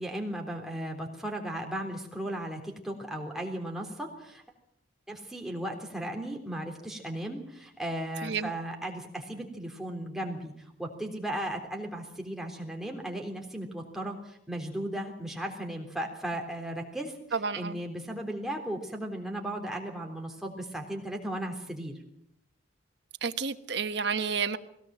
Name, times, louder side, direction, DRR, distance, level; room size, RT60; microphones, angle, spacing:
voice 1, 0.0-4.4 5.1-21.9, right 1 dB, ahead, 3.5 m, -36 dB
voice 2, 17.3-17.8 23.2-24.6, right 5 dB, 65° right, 1.2 m, -30 dB
21.0 x 17.5 x 7.6 m
head